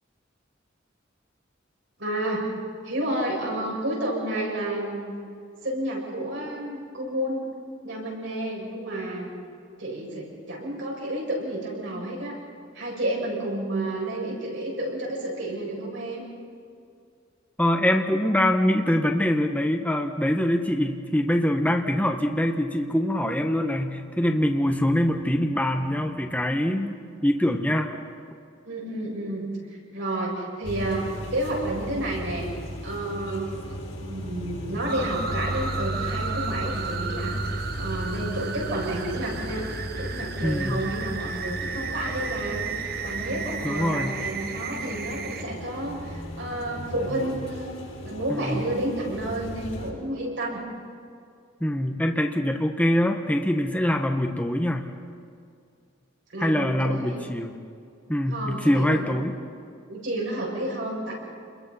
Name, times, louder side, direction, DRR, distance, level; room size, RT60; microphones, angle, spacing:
voice 1, 2.0-2.5 2.8-5.1 5.6-7.5 7.8-9.3 9.8-12.4 12.7-16.3 28.6-32.5 32.8-39.7 40.0-47.7 48.0-50.6 56.3-57.3 58.3-59.1 59.9-61.1, right 1 dB, 70° right, -3 dB, 7.8 m, -30 dB
voice 2, 17.6-27.9 40.4-40.9 43.6-44.2 48.3-48.6 51.6-54.9 56.4-57.6 58.1-59.4, left 1 dB, 10° left, 3 dB, 1.2 m, -24 dB
sound 1, 30.6-49.9, equal, 85° left, 7.4 m, -35 dB
sound 2, 34.9-45.4, right 6 dB, 50° right, 1.1 m, -34 dB
30.0 x 22.0 x 5.7 m, 2.3 s
head